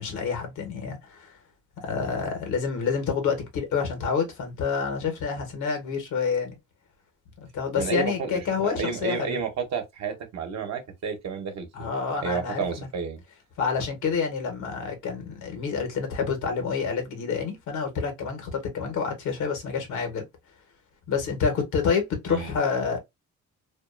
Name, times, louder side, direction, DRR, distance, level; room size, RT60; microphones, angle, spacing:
voice 1, 0.0-1.4 1.8-6.6 7.4-9.4 11.7-12.9 13.6-20.3 21.1-23.0, left 5 dB, 80° left, 1.1 m, -28 dB
voice 2, 7.7-11.9 12.2-13.2 22.3-22.5, right 6 dB, 60° right, 0.9 m, -31 dB
2.5 x 2.4 x 2.3 m
cardioid pair, 90°, 30 cm